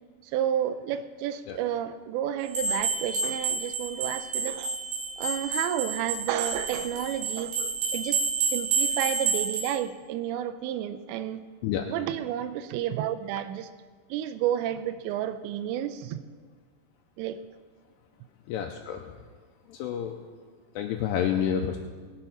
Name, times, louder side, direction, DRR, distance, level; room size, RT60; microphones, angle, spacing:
voice 1, 0.2-4.8 5.2-11.4 11.9-13.7 14.1-16.2 17.2-17.4, right 10 dB, 85° right, 9 dB, 2.8 m, -31 dB
sound 1, 2.5-9.7, right 4 dB, 60° right, 4.8 m, -29 dB
voice 2, 18.5-19.1 19.7-20.2 20.8-21.8, left 9 dB, 80° left, 3 dB, 2.7 m, -29 dB
20.5 x 6.9 x 5.9 m, 1.5 s
omnidirectional pair, 5.1 m